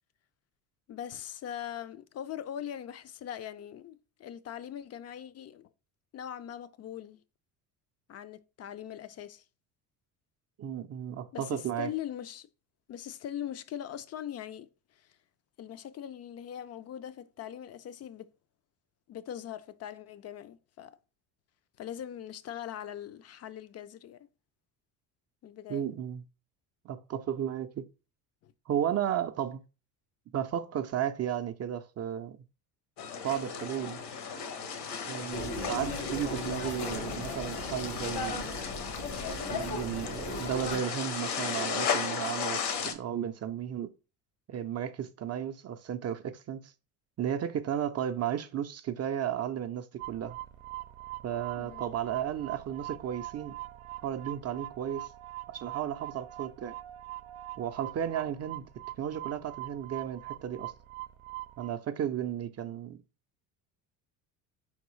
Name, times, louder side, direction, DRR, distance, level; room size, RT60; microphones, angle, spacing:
voice 1, 0.9-5.7 6.1-7.2 8.1-9.4 11.3-12.5 12.9-15.1 15.6-18.3 19.1-21.0 21.8-24.2 25.4-25.9 28.4-28.5 51.6-51.8, left 10 dB, 40° left, 0.4 m, -41 dB
voice 2, 10.6-11.9 25.7-26.2 26.8-27.8 28.7-29.6 30.3-32.4 33.2-34.0 35.1-38.5 39.5-43.9 44.5-46.7 47.2-50.4 51.2-53.6 54.0-55.1 55.5-56.8 57.6-58.6 59.0-60.7 61.6-63.0, right 10 dB, 40° right, 0.5 m, -34 dB
sound 1, 33.0-42.9, left 6 dB, 65° left, 1.0 m, -35 dB
sound 2, 35.3-40.8, left 2 dB, 85° left, 1.8 m, -37 dB
sound 3, 50.0-61.7, right 16 dB, 90° right, 0.6 m, -43 dB
4.6 x 3.6 x 3.0 m
supercardioid pair, 90°, 42 cm